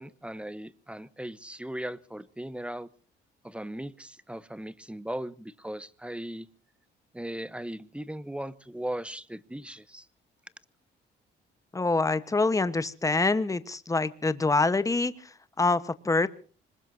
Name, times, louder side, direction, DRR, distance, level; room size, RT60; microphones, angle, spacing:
voice 1, 0.0-2.9 3.4-6.5 7.1-10.1, right 1 dB, 5° right, 18 dB, 0.9 m, -38 dB
voice 2, 11.7-15.1 15.6-16.3, left 3 dB, 15° left, 14 dB, 1.1 m, -25 dB
26.0 x 20.5 x 2.7 m, 0.40 s
cardioid pair, 90°, 20 cm